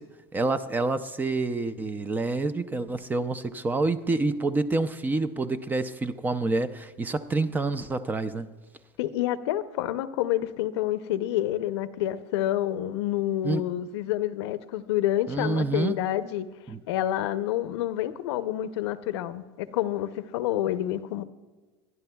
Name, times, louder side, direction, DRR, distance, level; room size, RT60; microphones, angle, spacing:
voice 1, 0.3-8.5 13.4-13.6 15.3-16.0 16.7-16.8, right 3 dB, 15° right, 0.4 m, -27 dB
voice 2, 9.0-16.5 16.9-21.2, left 13 dB, 80° left, 0.7 m, -28 dB
23.5 x 10.5 x 2.3 m
supercardioid pair, 140°, 14 cm